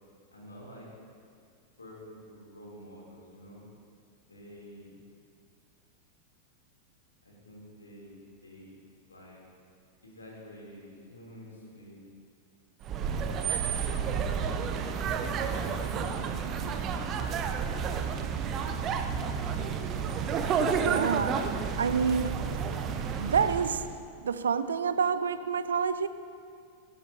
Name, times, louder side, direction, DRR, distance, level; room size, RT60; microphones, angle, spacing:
voice 1, 0.3-0.9 1.8-3.6 4.3-5.0 7.2-8.8 9.1-9.4 10.0-12.0 13.5-15.2, equal, 75° left, -3 dB, 3.0 m, -49 dB
sound 1, 12.8-23.9, right 6 dB, 30° right, 0.7 m, -31 dB
voice 2, 20.8-21.5 21.8-22.5 23.1-23.9 24.2-26.1, right 6 dB, 70° right, 12 dB, 0.5 m, -28 dB
17.0 x 11.5 x 2.8 m, 2.3 s
figure-of-eight pair, 90°, 0 cm